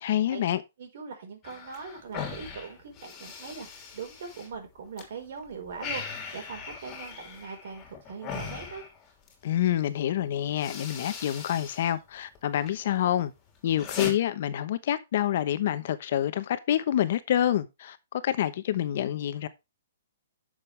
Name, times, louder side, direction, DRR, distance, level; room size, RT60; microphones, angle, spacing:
voice 1, 0.0-0.6 9.4-13.3 13.6-19.5, left 11 dB, 50° left, 0.9 m, -27 dB
voice 2, 0.8-8.8, right 5 dB, 60° right, 4.6 m, -41 dB
sound 1, 1.4-5.1 5.4-9.4 10.1-10.2 10.5-11.9 12.2-12.8 13.2-14.1, left 6 dB, 20° left, 3.0 m, -40 dB
11.0 x 6.6 x 3.3 m
hypercardioid pair, 155°, 0 cm